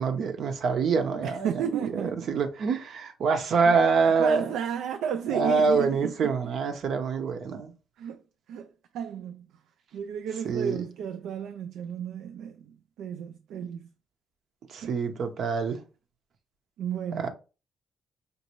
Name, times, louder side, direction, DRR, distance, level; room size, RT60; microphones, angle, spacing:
voice 1, 0.0-4.5 5.3-7.7 10.4-10.8 14.7-15.8 17.2-17.3, right 5 dB, 65° right, 0.8 m, -25 dB
voice 2, 1.2-2.3 3.7-3.8 4.0-6.4 8.0-8.2 8.5-9.5 9.9-13.9 14.7-15.0 16.8-17.3, right 8 dB, 85° right, 0.3 m, -33 dB
5.3 x 2.6 x 2.9 m
cardioid pair, 90°, 0 cm